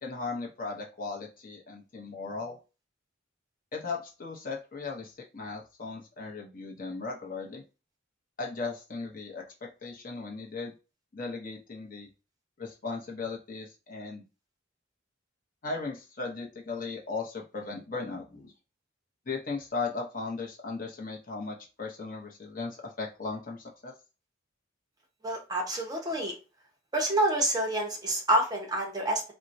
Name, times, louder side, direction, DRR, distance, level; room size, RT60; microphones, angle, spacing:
voice 1, 0.0-2.6 3.7-7.6 8.4-10.7 11.1-12.1 12.6-14.3 15.6-18.5 19.3-23.9, left 4 dB, 45° left, 0 dB, 0.7 m, -37 dB
voice 2, 25.2-26.3 26.9-29.2, right 1 dB, 20° right, 0 dB, 0.7 m, -27 dB
4.1 x 2.1 x 2.5 m, 0.31 s
head